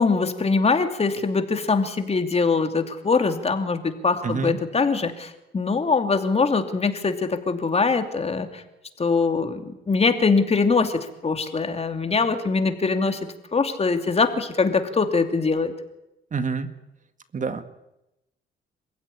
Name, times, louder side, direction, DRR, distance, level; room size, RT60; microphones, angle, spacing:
voice 1, 0.0-8.6 9.0-13.2 13.5-15.7, left 4 dB, 30° left, 7 dB, 2.8 m, -23 dB
voice 2, 4.2-4.6 16.3-16.7 17.3-17.6, right 5 dB, 40° right, 10 dB, 1.9 m, -27 dB
27.0 x 16.0 x 9.9 m, 0.90 s
cardioid pair, 90°, 20 cm